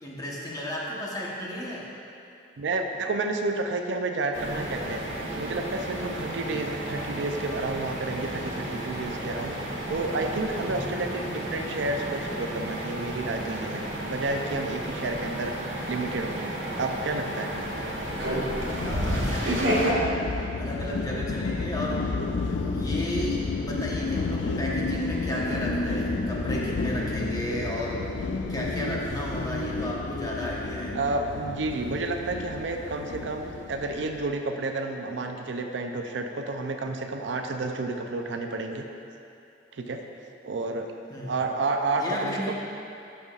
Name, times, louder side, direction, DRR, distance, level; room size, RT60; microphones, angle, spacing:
voice 1, 0.0-1.8 10.6-10.8 18.8-19.7 20.6-22.0 22.7-28.0 28.5-31.0 41.1-41.3 42.0-42.5, equal, 20° left, -4 dB, 1.0 m, -33 dB
voice 2, 2.6-5.0 5.4-9.5 9.9-15.5 15.9-17.5 20.6-20.7 21.1-21.2 30.9-38.8 39.7-40.0 40.4-40.9 41.3-42.5, right 3 dB, 70° right, 4 dB, 0.5 m, -30 dB
sound 1, 4.3-19.9, right 1 dB, 90° right, 1.1 m, -32 dB
sound 2, 16.9-34.3, left 3 dB, 70° left, 0.4 m, -31 dB
12.0 x 5.5 x 2.4 m, 2.7 s
head